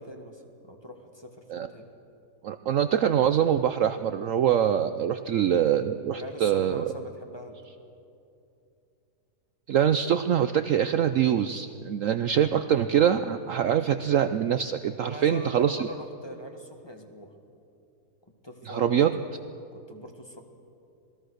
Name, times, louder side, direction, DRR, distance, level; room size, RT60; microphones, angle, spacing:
voice 1, 0.0-1.9 6.1-7.6 15.0-17.3 18.4-19.0 19.7-20.4, left 1 dB, 15° left, 3 dB, 1.8 m, -42 dB
voice 2, 2.4-6.9 9.7-15.9 18.7-19.1, right 9 dB, 65° right, 10 dB, 0.9 m, -24 dB
27.0 x 20.0 x 6.5 m, 2.7 s
omnidirectional pair, 1.8 m